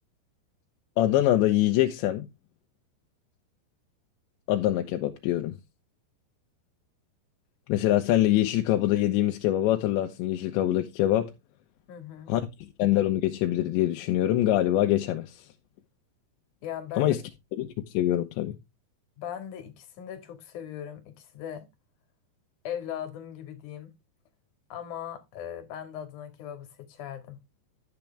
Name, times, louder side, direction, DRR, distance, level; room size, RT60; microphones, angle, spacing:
voice 1, 1.0-2.3 4.5-5.6 7.7-11.3 12.3-15.5 17.0-17.2 17.6-18.6, left 13 dB, 90° left, 3.2 m, -24 dB
voice 2, 11.9-12.3 16.6-17.1 19.2-21.7 22.6-23.9 24.7-27.4, left 9 dB, 55° left, 2.8 m, -39 dB
12.0 x 8.2 x 3.4 m
omnidirectional pair, 5.1 m